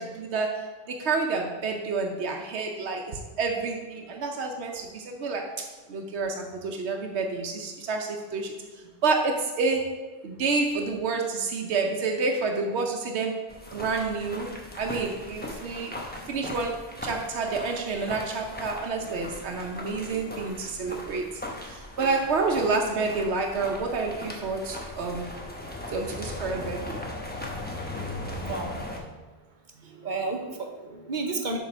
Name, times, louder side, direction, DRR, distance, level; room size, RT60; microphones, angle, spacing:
voice 1, 0.0-5.5 5.9-10.0 10.2-16.0 16.3-25.3 25.9-27.0, right 4 dB, 90° right, 2 dB, 1.0 m, -29 dB
sound 1, 13.5-29.0, left 1 dB, 10° left, 0.9 m, -38 dB
voice 2, 27.8-29.1 29.7-31.6, right 3 dB, 50° right, 3 dB, 1.0 m, -34 dB
7.3 x 3.7 x 6.0 m, 1.3 s
omnidirectional pair, 1.1 m